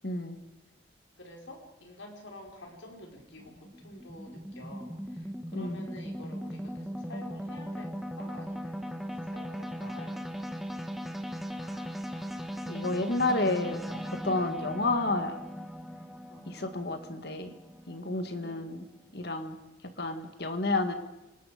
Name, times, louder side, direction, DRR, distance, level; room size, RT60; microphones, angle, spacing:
voice 1, 0.0-0.4 5.5-5.8 11.7-11.9 12.7-13.8 14.2-15.4 16.5-17.5 17.9-18.8 19.1-19.6 20.0-20.9, left 2 dB, 55° left, 8 dB, 1.8 m, -30 dB
voice 2, 1.2-10.5 16.3-16.5 18.0-18.7 19.4-19.7, left 1 dB, 75° left, 1 dB, 4.7 m, -49 dB
sound 1, 2.5-18.9, equal, ahead, 1.7 m, -39 dB
29.5 x 20.0 x 5.1 m, 0.99 s
head